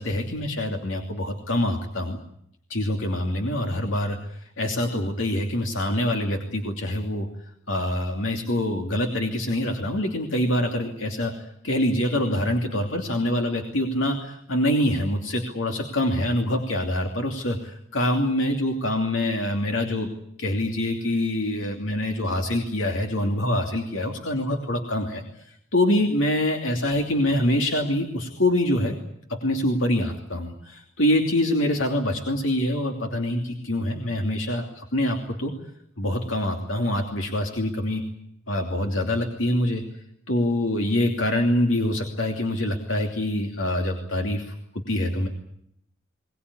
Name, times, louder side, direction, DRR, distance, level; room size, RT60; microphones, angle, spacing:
voice 1, 0.0-2.2 2.7-7.3 7.7-20.1 20.4-28.9 29.3-35.5 36.0-38.0 38.5-39.8 40.3-44.5 44.9-45.3, left 1 dB, 75° left, 3 dB, 2.8 m, -25 dB
23.0 x 19.5 x 9.8 m, 0.72 s
head